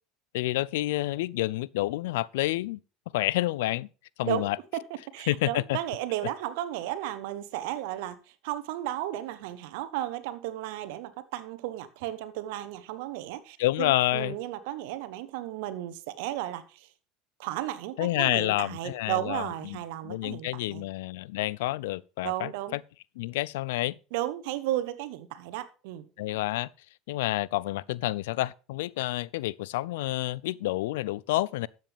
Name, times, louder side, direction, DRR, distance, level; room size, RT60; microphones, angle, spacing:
voice 1, 0.3-2.8 3.1-3.9 4.2-4.6 5.3-5.8 13.6-14.4 18.0-19.8 20.0-22.8 23.2-24.0 26.2-26.7 27.1-31.7, left 17 dB, 80° left, 0.4 m, -29 dB
voice 2, 5.1-8.2 8.4-16.9 17.4-20.8 22.2-22.8 24.1-26.0, right 13 dB, 75° right, 1.0 m, -34 dB
13.0 x 7.6 x 3.5 m
hypercardioid pair, 85°, 0 cm